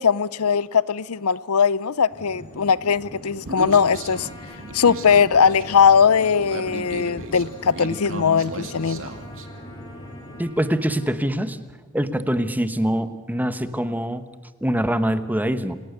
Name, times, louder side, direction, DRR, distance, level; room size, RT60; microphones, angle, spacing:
voice 1, 0.0-4.3 4.7-9.1, left 6 dB, 75° left, 0.7 m, -19 dB
sound 1, 2.1-10.4, equal, 35° left, 5.0 m, -42 dB
Human voice, 3.5-9.5, right 2 dB, 65° right, 2.3 m, -35 dB
Trumpet, 3.9-11.2, left 1 dB, 20° left, 7.0 m, -49 dB
voice 2, 10.4-11.6 11.9-14.2 14.6-15.8, equal, 10° right, 1.1 m, -24 dB
27.5 x 18.5 x 6.7 m
head